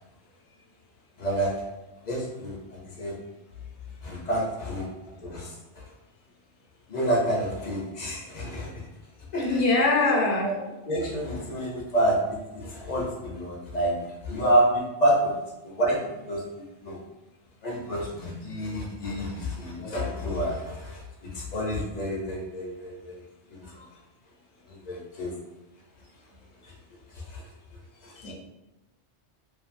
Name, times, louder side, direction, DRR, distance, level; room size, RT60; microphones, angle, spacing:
voice 1, 1.2-1.7 2.0-3.2 4.0-4.9 5.2-5.5 6.9-8.7 9.3-9.6 10.1-10.5 10.9-16.4 16.8-17.0 17.6-23.2 23.5-23.9 24.7-25.3 27.3-27.4 28.0-28.3, right 1 dB, 50° left, -2 dB, 0.6 m, -28 dB
voice 2, 9.4-10.5 12.8-12.9 28.2-28.3, left 3 dB, 75° left, -1 dB, 0.9 m, -23 dB
2.5 x 2.5 x 2.5 m, 1.0 s
omnidirectional pair, 1.2 m